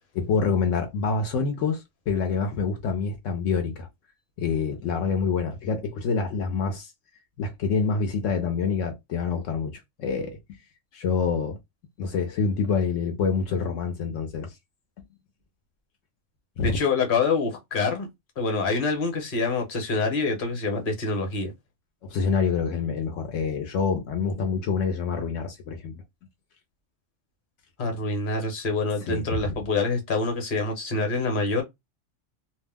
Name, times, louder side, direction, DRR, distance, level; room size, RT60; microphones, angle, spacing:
voice 1, 0.1-3.9 4.4-6.9 7.4-10.4 10.9-11.6 12.0-14.5 16.6-16.8 22.0-26.0 29.1-29.2, left 5 dB, 80° left, 1.0 m, -26 dB
voice 2, 16.6-18.1 18.4-21.5 27.8-31.6, left 3 dB, 45° left, 1.1 m, -26 dB
2.5 x 2.1 x 3.3 m
omnidirectional pair, 1.3 m